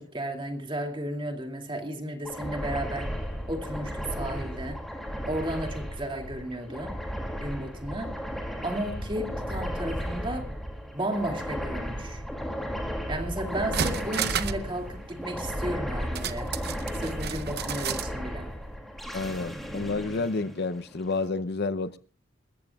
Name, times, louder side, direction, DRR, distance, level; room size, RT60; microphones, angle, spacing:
voice 1, 0.0-3.1 3.5-4.8 5.3-7.0 7.4-8.2 8.6-10.5 10.9-12.2 13.1-16.5 17.0-18.5, right 1 dB, 25° right, 2.3 m, -33 dB
sound 1, 2.2-21.1, equal, ahead, 2.5 m, -35 dB
sound 2, 13.1-13.2 13.5-14.7 15.0-15.1 16.2-18.1 18.5-18.6, right 8 dB, 50° right, 0.7 m, -32 dB
voice 2, 19.1-22.0, left 3 dB, 55° left, 0.6 m, -30 dB
28.0 x 14.5 x 2.3 m
head